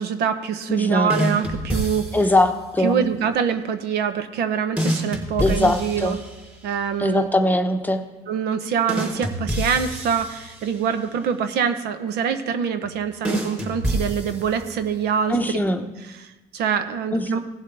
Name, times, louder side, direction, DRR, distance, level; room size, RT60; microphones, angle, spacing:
voice 1, 0.0-2.1 2.8-6.2 6.6-7.3 8.3-15.6 16.2-17.4, right 7 dB, 80° right, 9 dB, 0.9 m, -25 dB
voice 2, 0.7-1.1 2.1-3.0 5.4-6.2 7.0-8.0 15.3-15.8 17.1-17.4, left 1 dB, 10° left, 6 dB, 0.9 m, -21 dB
sound 1, 1.1-2.5 4.8-6.7 8.9-11.0 13.2-14.9, equal, 10° right, 3.6 m, -28 dB
17.0 x 7.4 x 3.4 m, 1.2 s
cardioid pair, 110°, 17 cm